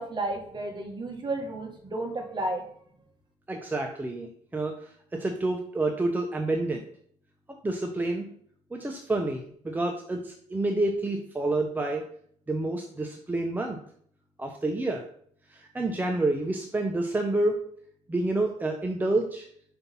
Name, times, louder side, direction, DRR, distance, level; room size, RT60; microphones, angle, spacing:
voice 1, 0.0-2.6, right 2 dB, 35° right, 2 dB, 1.8 m, -32 dB
voice 2, 3.5-6.8 7.5-8.3 8.7-12.1 12.5-13.8 14.4-15.0 15.5-17.6 18.1-19.5, right 2 dB, 15° right, 2 dB, 0.9 m, -28 dB
5.3 x 4.5 x 5.4 m, 0.62 s
cardioid pair, 95°, 13 cm